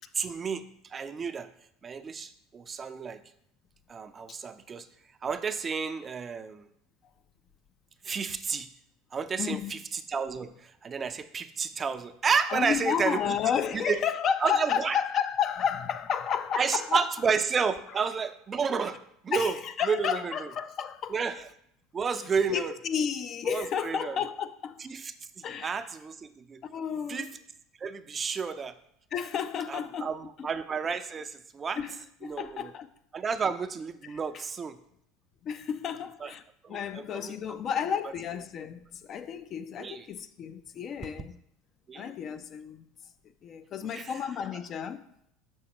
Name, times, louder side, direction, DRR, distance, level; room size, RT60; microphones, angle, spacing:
voice 1, 0.1-1.5 1.8-3.2 3.9-4.9 5.2-6.7 8.0-8.7 9.1-9.8 10.1-13.2 13.7-14.0 14.4-15.0 16.6-19.0 19.2-19.6 19.8-20.5 21.1-21.4 21.9-22.7 23.4-24.2 24.8-26.6 27.1-27.3 27.8-28.8 29.7-31.8 32.2-32.7 33.1-34.8 36.2-36.3 36.6-37.6 39.8-40.1 41.9-42.1 43.9-44.2, right 5 dB, 30° right, 0.5 m, -31 dB
voice 2, 9.4-9.8 12.5-17.0 19.3-21.1 22.5-24.8 25.4-25.8 26.7-27.3 29.1-30.5 31.8-32.9 34.0-34.4 35.4-36.4 36.7-41.3 41.9-42.9 43.4-45.0, left 8 dB, 45° left, 0.5 m, -32 dB
7.0 x 6.3 x 2.9 m
hypercardioid pair, 85°, 0 cm